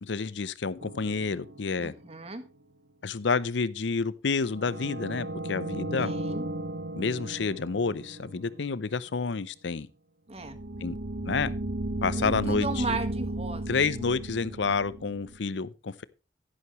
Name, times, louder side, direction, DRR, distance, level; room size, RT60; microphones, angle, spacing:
voice 1, 0.0-1.9 3.0-6.1 6.9-9.9 10.8-11.0 11.3-11.5 12.0-12.7 13.7-16.0, left 4 dB, 85° left, 0.6 m, -29 dB
sound 1, 0.8-2.3 4.5-8.9 10.4-15.4, right 1 dB, 75° right, 1.1 m, -35 dB
voice 2, 1.8-2.4 6.0-6.5 10.3-10.6 12.2-13.6, right 3 dB, 35° right, 1.5 m, -35 dB
11.5 x 11.0 x 3.1 m
head